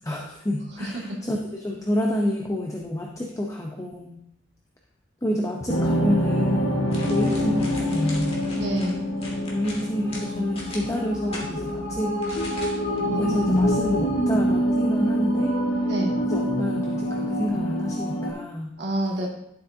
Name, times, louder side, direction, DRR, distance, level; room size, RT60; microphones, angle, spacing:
voice 1, 0.1-4.2 5.2-8.4 9.5-12.2 13.2-15.6 16.3-18.7, left 1 dB, 15° left, 0 dB, 0.8 m, -28 dB
voice 2, 0.8-1.2 8.5-9.0 12.9-13.7 15.8-16.1 18.8-19.3, right 1 dB, 65° right, -2 dB, 2.2 m, -29 dB
sound 1, 5.7-18.3, equal, 85° left, 1.6 m, -25 dB
sound 2, 6.9-11.5 12.2-13.0 13.3-13.5, left 2 dB, 35° left, 2.2 m, -40 dB
12.0 x 7.6 x 2.8 m, 0.76 s
head